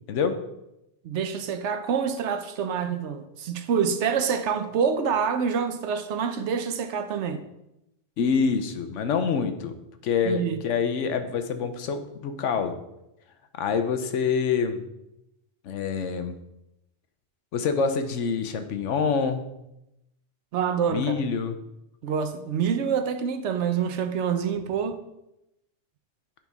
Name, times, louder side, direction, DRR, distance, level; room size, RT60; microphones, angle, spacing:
voice 1, 0.1-0.4 8.2-9.7 10.0-12.7 13.6-14.8 15.6-16.3 17.5-19.4 20.9-21.5, left 6 dB, 85° left, 1.1 m, -26 dB
voice 2, 1.0-7.4 10.2-10.6 20.5-21.1 22.0-25.0, right 7 dB, 75° right, 1.0 m, -26 dB
8.8 x 5.4 x 3.5 m
omnidirectional pair, 1.2 m